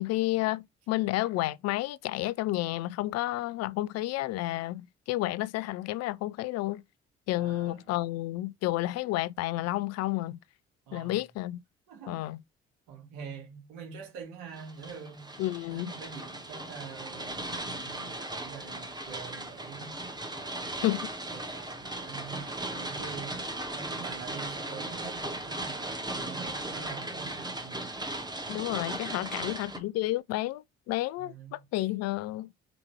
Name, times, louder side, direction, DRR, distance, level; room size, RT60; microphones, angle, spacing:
voice 1, 0.0-6.8 7.3-10.4 10.9-11.6 12.1-12.4 15.4-15.9 20.8-21.0 28.5-32.5, left 17 dB, 55° left, 0.4 m, -31 dB
voice 2, 7.4-7.9 10.9-11.2 11.9-12.3 12.9-15.4 15.7-20.0 20.3-21.0 21.3-28.0 29.0-29.4 31.2-31.9, right 6 dB, 70° right, 1.9 m, -45 dB
sound 1, 14.5-29.8, right 2 dB, 15° right, 1.3 m, -37 dB
5.0 x 3.4 x 3.2 m
hypercardioid pair, 50°, 30 cm